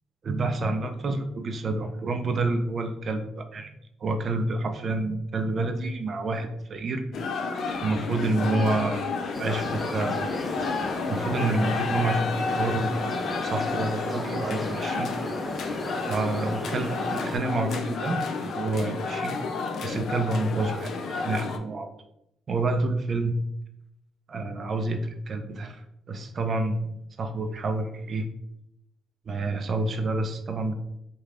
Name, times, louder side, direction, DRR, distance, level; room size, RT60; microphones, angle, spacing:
voice 1, 0.2-3.7 4.0-7.0 7.8-9.0 9.4-10.3 11.1-13.0 13.4-15.1 16.1-19.4 19.8-21.9 22.5-23.4 24.3-25.8 26.1-26.9 27.2-28.3 29.3-30.7, right 2 dB, 45° right, 7 dB, 0.4 m, -28 dB
sound 1, 7.1-21.6, left 4 dB, 65° left, 0.3 m, -31 dB
sound 2, 9.3-17.4, left 1 dB, 5° left, 0.7 m, -35 dB
3.2 x 2.2 x 2.4 m, 0.83 s
cardioid pair, 85°, 0 cm